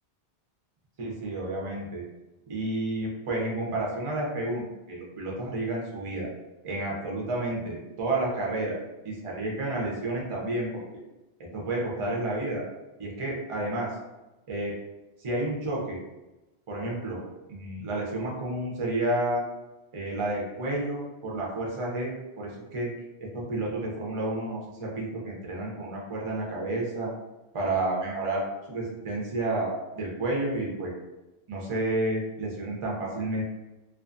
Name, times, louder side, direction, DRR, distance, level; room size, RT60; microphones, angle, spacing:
voice 1, 1.0-2.0 2.5-6.3 6.6-10.8 11.5-12.6 13.0-13.9 14.5-14.7 15.2-16.0 16.7-17.2 17.5-19.4 19.9-22.9 23.2-27.1 27.5-30.9 31.5-33.4, right 2 dB, 40° right, -3 dB, 0.5 m, -30 dB
2.5 x 2.3 x 2.4 m, 1.0 s
omnidirectional pair, 1.1 m